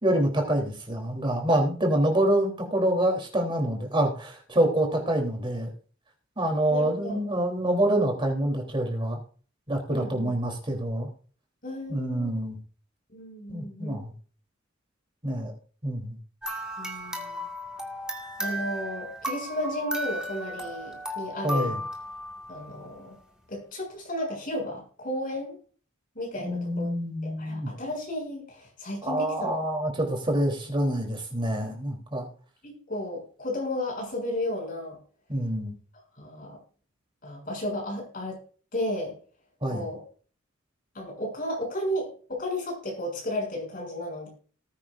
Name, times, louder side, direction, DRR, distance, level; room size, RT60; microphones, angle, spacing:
voice 1, 0.0-5.7 6.4-9.2 9.7-11.1 11.9-12.6 13.5-14.1 15.2-15.5 15.8-16.2 21.4-21.8 26.4-27.7 29.0-32.3 35.3-35.7 39.6-39.9, right 1 dB, 25° right, 2 dB, 3.3 m, -26 dB
voice 2, 6.7-7.2 9.9-10.3 11.6-12.3 13.1-14.0 16.8-17.5 18.4-21.8 22.5-23.1 23.5-25.6 26.1-26.9 27.2-29.6 32.6-35.0 36.2-36.6 37.2-38.4 38.7-39.2 39.7-40.0 40.9-44.3, left 1 dB, 45° left, 0 dB, 6.9 m, -33 dB
sound 1, 16.4-22.9, equal, 5° right, 1.9 m, -35 dB
19.0 x 9.0 x 2.5 m, 0.42 s
head